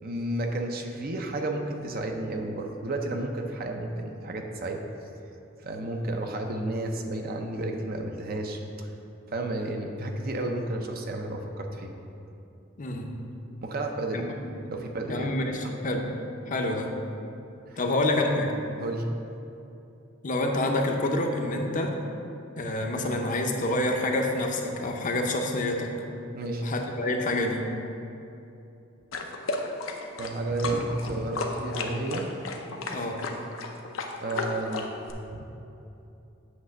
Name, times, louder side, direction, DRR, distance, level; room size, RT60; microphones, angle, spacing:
voice 1, 0.0-4.8 5.6-8.9 9.3-11.9 13.6-14.3 14.7-15.3 17.7-17.8 18.8-19.0 26.3-26.6 30.2-32.3 34.1-35.6, right 2 dB, 50° right, 3 dB, 0.6 m, -32 dB
voice 2, 12.8-13.2 14.1-14.2 14.6-14.7 15.1-16.1 16.5-16.9 17.8-18.5 20.2-21.9 22.6-25.9 26.6-27.7 32.9-33.2, left 1 dB, 40° left, 2 dB, 0.6 m, -27 dB
sound 1, 29.1-35.1, left 3 dB, 80° left, 0.7 m, -34 dB
7.9 x 3.2 x 6.3 m, 2.8 s
head